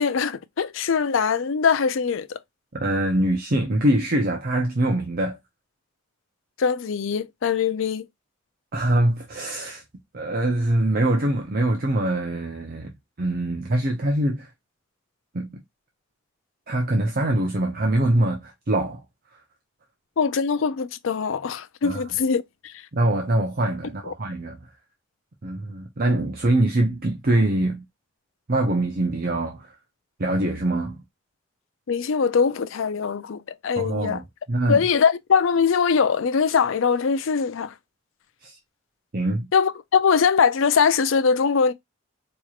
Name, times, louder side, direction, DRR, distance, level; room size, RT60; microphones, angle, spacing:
voice 1, 0.0-2.4 6.6-8.0 20.2-22.8 24.0-24.1 31.9-34.2 34.7-37.7 39.5-41.7, left 6 dB, 75° left, 0.5 m, -22 dB
voice 2, 2.7-5.4 8.7-9.8 10.1-12.9 13.2-14.5 15.3-15.6 16.7-19.0 21.8-22.0 22.9-24.6 25.4-27.8 28.5-29.7 30.2-31.0 33.8-34.2 34.5-34.8 38.4-38.6 39.1-39.5, right 1 dB, 50° right, 0.7 m, -23 dB
4.4 x 3.0 x 2.4 m
head